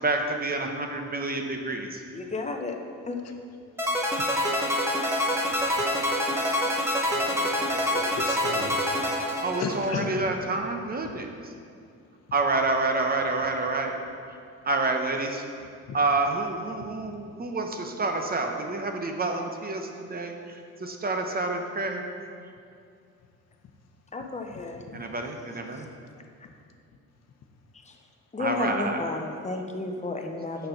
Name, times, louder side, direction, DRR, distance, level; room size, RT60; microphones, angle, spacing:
voice 1, 0.0-2.0 9.4-11.5 12.3-14.0 14.6-15.4 15.9-22.0 24.9-25.9 28.4-29.0, right 3 dB, 30° right, 4 dB, 0.8 m, -28 dB
voice 2, 2.1-2.8 3.1-3.2 24.1-24.8 25.7-25.9 27.8-28.0 28.3-30.7, left 3 dB, 25° left, 4 dB, 0.8 m, -32 dB
sound 1, 3.8-10.1, left 1 dB, 10° right, 1.1 m, -26 dB
voice 3, 7.1-8.8 9.6-10.1 15.9-16.0 24.9-25.0, left 5 dB, 60° left, 4 dB, 0.8 m, -35 dB
6.5 x 5.6 x 5.8 m, 2.4 s
cardioid pair, 90°, 30 cm